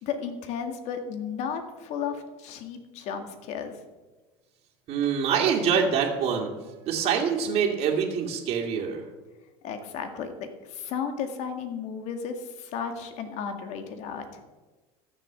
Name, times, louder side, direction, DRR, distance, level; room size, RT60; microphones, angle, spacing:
voice 1, 0.0-3.8 9.6-14.4, left 7 dB, 60° left, 7 dB, 2.0 m, -34 dB
voice 2, 4.9-6.5 6.8-9.0, right 7 dB, 50° right, 0 dB, 2.3 m, -25 dB
13.5 x 7.2 x 7.5 m, 1.2 s
supercardioid pair, 115°, 13 cm